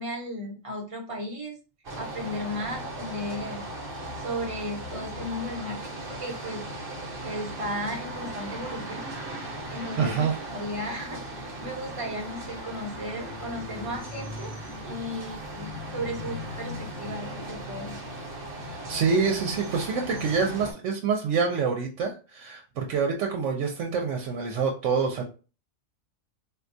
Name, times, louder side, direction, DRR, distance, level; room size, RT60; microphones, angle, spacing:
voice 1, 0.0-1.6 2.0-3.6 4.2-6.6 7.2-9.1 9.7-14.5 14.8-18.0, equal, 30° right, 0 dB, 0.9 m, -35 dB
sound 1, 1.8-20.7, right 1 dB, 55° right, 1.0 m, -37 dB
voice 2, 10.0-10.4 18.7-25.2, right 5 dB, 85° right, 2 dB, 0.9 m, -26 dB
4.0 x 2.3 x 2.6 m, 0.34 s
omnidirectional pair, 1.2 m